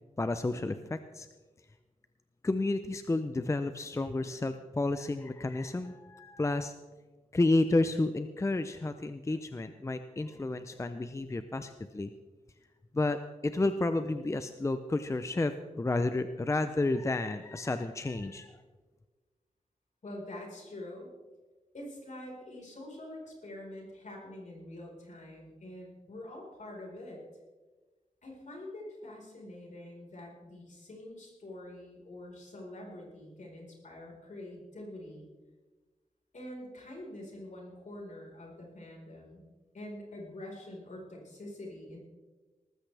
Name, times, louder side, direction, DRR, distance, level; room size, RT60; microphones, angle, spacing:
voice 1, 0.2-1.3 2.4-6.7 7.3-12.1 12.9-18.5, left 2 dB, 20° left, 9 dB, 0.5 m, -31 dB
voice 2, 20.0-21.1 21.7-27.2 28.2-35.3 36.3-39.4 39.7-42.0, left 1 dB, 60° left, -2 dB, 4.5 m, -45 dB
19.5 x 14.5 x 3.4 m, 1.3 s
wide cardioid pair, 130°, 14 cm